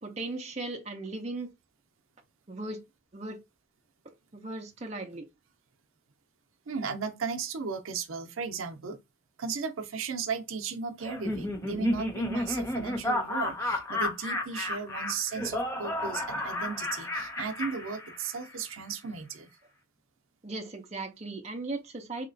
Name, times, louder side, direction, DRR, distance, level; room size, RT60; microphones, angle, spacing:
voice 1, 0.0-1.5 2.5-2.8 3.1-3.4 4.3-5.2 20.4-22.3, right 2 dB, 35° right, 0.6 m, -37 dB
voice 2, 6.7-9.0 9.4-19.5, right 5 dB, 85° right, 0.6 m, -35 dB
Laughter, 11.0-18.5, left 1 dB, 15° left, 0.6 m, -32 dB
3.1 x 2.9 x 2.6 m
head